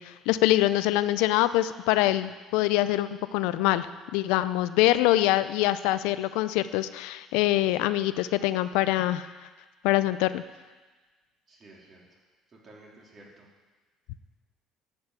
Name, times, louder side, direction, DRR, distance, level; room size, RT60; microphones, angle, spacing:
voice 1, 0.0-3.9 4.1-9.3 9.8-10.4, left 15 dB, 80° left, 14 dB, 0.4 m, -24 dB
voice 2, 11.5-12.2 12.5-13.5, right 2 dB, 40° right, -3 dB, 3.3 m, -53 dB
10.5 x 5.6 x 7.9 m, 1.3 s
supercardioid pair, 75°, 0 cm